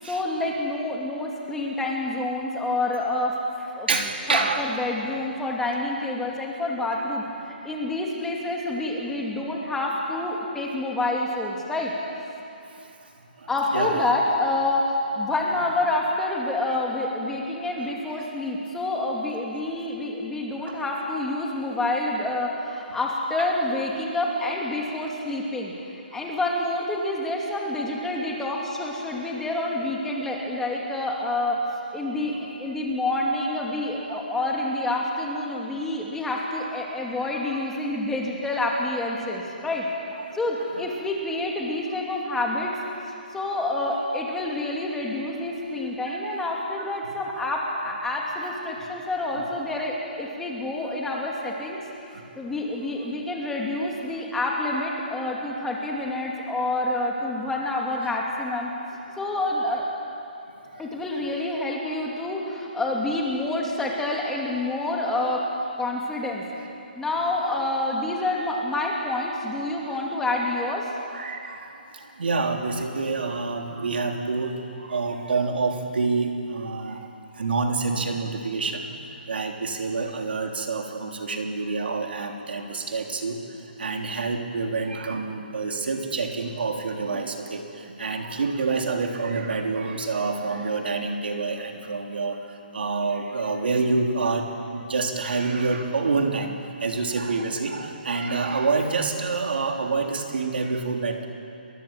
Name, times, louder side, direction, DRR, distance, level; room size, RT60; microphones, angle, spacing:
voice 1, 0.1-3.9 4.3-11.9 13.5-25.7 26.1-31.6 31.9-39.9 40.3-42.7 43.3-51.8 52.4-58.7 59.2-59.9 60.8-65.5 65.8-66.4 67.0-70.9, left 2 dB, 5° left, -2 dB, 2.7 m, -28 dB
voice 2, 3.9-4.7 12.8-12.9 13.4-14.0 20.7-20.8 23.4-23.5 34.1-34.2 37.6-37.7 39.4-39.6 40.1-40.4 40.7-40.9 46.1-46.2 47.0-47.1 47.4-47.5 50.8-50.9 52.1-52.2 60.7-60.9 71.1-77.0 77.3-78.9 79.3-83.4 83.8-92.4 92.7-96.5 96.8-101.3, right 4 dB, 75° right, 2 dB, 3.6 m, -27 dB
29.5 x 22.0 x 7.6 m, 2.7 s
hypercardioid pair, 160°, 6 cm